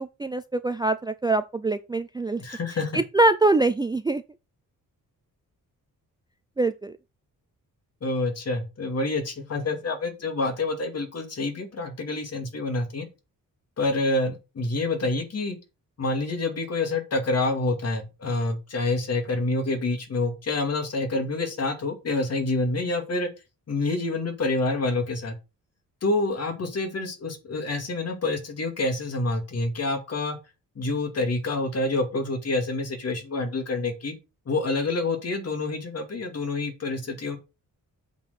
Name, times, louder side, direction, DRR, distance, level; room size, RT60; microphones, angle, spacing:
voice 1, 0.0-2.4 2.9-4.2 6.6-6.9, right 2 dB, 15° right, 0.4 m, -24 dB
voice 2, 2.4-3.0 8.0-13.1 13.8-15.6 16.0-23.3 23.7-25.4 26.0-30.4 30.8-34.1 34.5-37.4, left 2 dB, 50° left, 2.3 m, -27 dB
7.8 x 4.5 x 6.7 m
wide cardioid pair, 165°, 33 cm